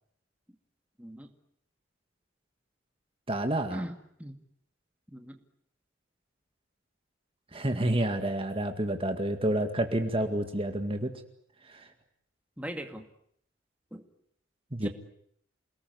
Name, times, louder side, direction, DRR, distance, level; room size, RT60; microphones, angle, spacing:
voice 1, 1.0-1.3 3.7-4.4 5.1-5.4 12.6-13.1 13.9-14.1 14.8-14.9, equal, 5° right, 5 dB, 2.3 m, -40 dB
voice 2, 3.3-3.8 7.5-11.1 11.7-11.8 14.7-14.9, right 1 dB, 30° right, 6 dB, 2.1 m, -29 dB
28.5 x 20.0 x 9.6 m, 0.69 s
head